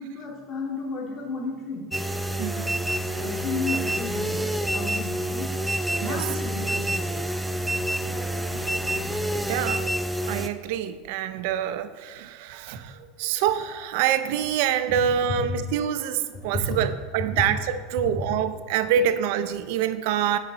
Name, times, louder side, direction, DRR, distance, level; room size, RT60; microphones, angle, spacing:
voice 1, 0.0-1.9 3.2-5.5 6.0-7.3 7.7-7.8 8.0-8.5 16.5-16.8, left 3 dB, 40° left, -1 dB, 2.1 m, -33 dB
sound 1, 1.9-10.5, right 1 dB, 5° right, 0.5 m, -28 dB
voice 2, 2.4-3.1 6.0-6.3 8.5-8.7 8.9-9.9 10.3-20.4, right 9 dB, 70° right, 11 dB, 0.5 m, -26 dB
9.9 x 5.4 x 4.0 m, 1.5 s
supercardioid pair, 115°, 0 cm